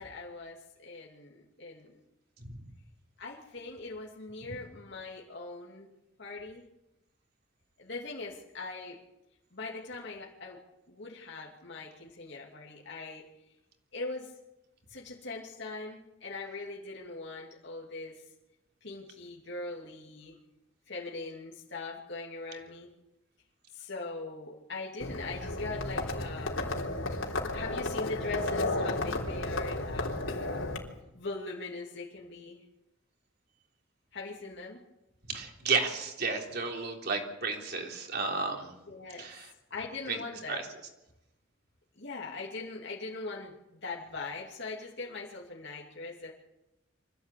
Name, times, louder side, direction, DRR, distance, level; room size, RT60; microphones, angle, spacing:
voice 1, 0.0-1.9 3.2-5.9 6.2-6.6 7.8-9.0 9.5-13.2 13.9-14.4 14.9-18.2 18.8-20.3 20.9-22.9 23.7-26.6 27.5-30.2 31.1-32.6 34.1-34.8 38.9-39.3 39.7-40.6 42.0-46.3, left 3 dB, 60° left, -3 dB, 2.8 m, -41 dB
Livestock farm animals working animals, 25.0-30.8, left 2 dB, 85° left, 3.7 m, -33 dB
voice 2, 35.3-38.7 39.2-39.5 40.1-40.2 40.5-40.7, right 4 dB, 55° right, 2 dB, 3.6 m, -32 dB
24.5 x 16.0 x 8.6 m, 0.95 s
head